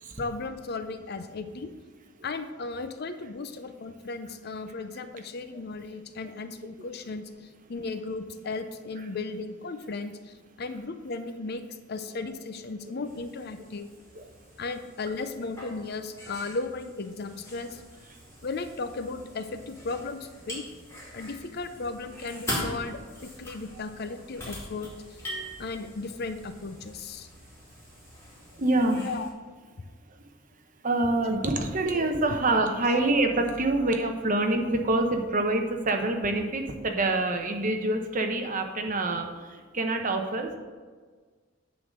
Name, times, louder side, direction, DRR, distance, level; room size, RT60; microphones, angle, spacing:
voice 1, 0.2-1.7 2.2-13.9 14.6-17.8 18.4-20.6 21.1-25.2 25.6-27.3 29.0-29.3 32.3-32.4 32.8-33.3 34.0-34.1, left 3 dB, 55° left, 9 dB, 0.6 m, -36 dB
sound 1, 13.0-29.3, equal, 15° left, 2.4 m, -42 dB
voice 2, 28.5-29.1 30.8-40.6, right 2 dB, 45° right, 4 dB, 0.9 m, -26 dB
9.6 x 3.9 x 6.4 m, 1.5 s
head